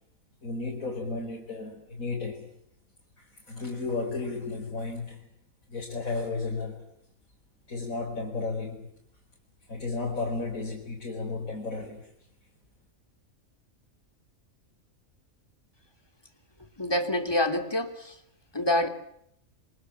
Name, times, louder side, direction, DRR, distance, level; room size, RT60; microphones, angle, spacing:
voice 1, 0.4-2.5 3.5-5.3 5.7-6.8 7.7-8.9 9.7-12.1, left 3 dB, 80° left, -1 dB, 5.3 m, -33 dB
voice 2, 16.8-18.1 18.5-18.9, left 1 dB, 15° left, 5 dB, 3.0 m, -26 dB
28.5 x 26.0 x 7.5 m, 0.73 s
omnidirectional pair, 1.4 m